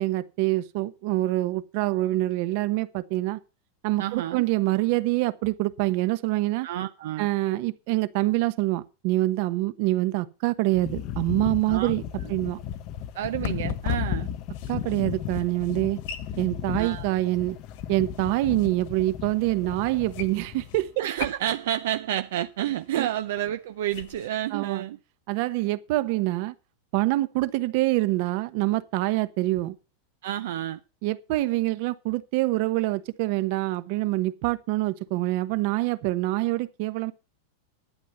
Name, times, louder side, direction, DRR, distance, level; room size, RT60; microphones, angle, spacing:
voice 1, 0.0-3.4 3.8-6.7 7.2-12.0 12.3-12.6 14.7-16.0 16.4-17.6 17.9-21.0 22.9-23.1 24.5-24.8 25.3-26.5 26.9-29.8 31.0-37.1, right 18 dB, 50° right, 1.0 m, -25 dB
voice 2, 4.0-4.4 6.6-7.3 11.7-11.9 13.1-14.3 16.7-17.1 21.0-25.0 30.2-30.8, right 12 dB, 70° right, 0.6 m, -29 dB
sound 1, 10.7-20.9, left 10 dB, 35° left, 0.8 m, -35 dB
sound 2, 11.6-24.3, left 8 dB, 55° left, 1.7 m, -42 dB
11.5 x 9.3 x 5.6 m
supercardioid pair, 155°, 0 cm